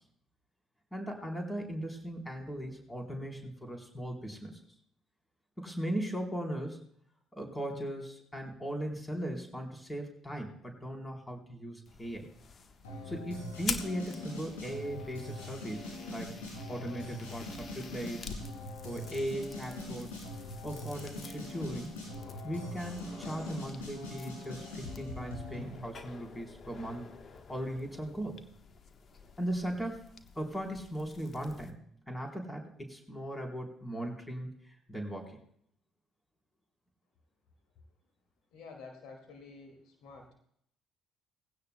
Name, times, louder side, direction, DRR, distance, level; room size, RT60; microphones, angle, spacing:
voice 1, 0.9-4.6 5.6-6.8 7.3-12.3 13.1-16.3 16.7-18.3 18.8-20.2 20.6-21.9 22.4-27.1 27.5-28.5 29.4-30.0 30.4-31.7 32.1-35.4, right 1 dB, 15° left, 1 dB, 3.8 m, -38 dB
sound 1, 11.9-31.7, left 5 dB, 45° left, 1.2 m, -47 dB
sound 2, 12.8-25.8, left 1 dB, 80° left, 6.6 m, -43 dB
voice 2, 38.5-40.3, left 4 dB, 65° left, 2 dB, 2.2 m, -50 dB
19.0 x 16.0 x 2.2 m, 0.68 s
figure-of-eight pair, 50°, 0 cm